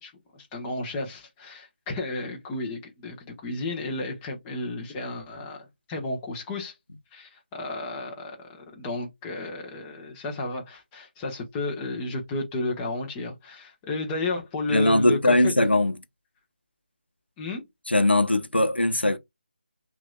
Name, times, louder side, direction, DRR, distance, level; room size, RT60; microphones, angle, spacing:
voice 1, 0.0-6.7 7.1-8.5 8.8-15.5 17.4-17.7, left 2 dB, 15° left, 1.1 m, -33 dB
voice 2, 14.7-16.0 17.9-19.2, left 1 dB, 90° left, 0.9 m, -20 dB
5.9 x 2.7 x 2.3 m
figure-of-eight pair, 155°, 6 cm